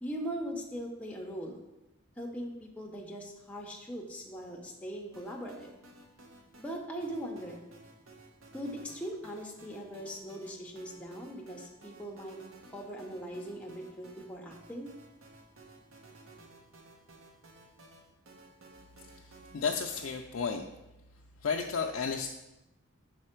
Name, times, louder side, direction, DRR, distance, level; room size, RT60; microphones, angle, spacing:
voice 1, 0.0-1.6 2.2-5.7 6.6-7.6 8.5-12.4 12.7-14.9, equal, 5° left, 0 dB, 0.7 m, -40 dB
sound 1, 5.1-20.1, right 2 dB, 70° right, 0.8 m, -56 dB
voice 2, 19.1-20.6 21.4-22.3, left 5 dB, 65° left, 2 dB, 0.4 m, -33 dB
5.5 x 4.1 x 4.4 m, 0.94 s
head